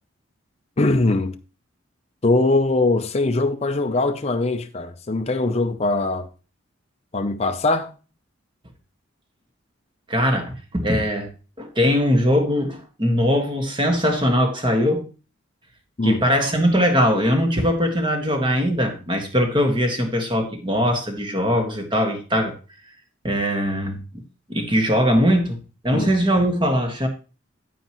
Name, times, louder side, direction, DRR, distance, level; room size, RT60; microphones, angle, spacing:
voice 1, 0.8-1.4 2.2-6.3 7.1-7.9 16.0-16.2 25.9-26.1, left 2 dB, 30° left, 0.5 m, -21 dB
voice 2, 10.1-11.3 11.6-15.1 16.0-22.5 23.2-24.2 24.5-25.6 25.8-27.1, equal, 25° right, 1.7 m, -21 dB
9.4 x 9.3 x 3.0 m
head